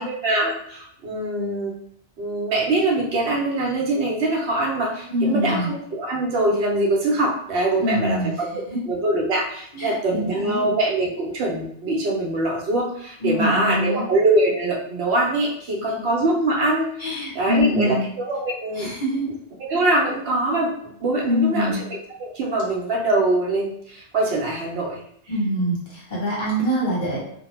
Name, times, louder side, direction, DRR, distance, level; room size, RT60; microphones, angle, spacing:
voice 1, 0.0-1.7 2.2-8.5 8.9-18.9 19.6-21.9 22.2-25.0, right 2 dB, 65° right, -2 dB, 0.8 m, -23 dB
voice 2, 5.1-5.7 7.8-8.3 8.7-8.8 9.7-10.6 13.2-14.0 17.0-18.0 18.7-19.3 21.2-21.8 25.3-27.2, left 1 dB, 45° left, -5 dB, 0.8 m, -24 dB
2.2 x 2.1 x 3.0 m, 0.67 s
omnidirectional pair, 1.3 m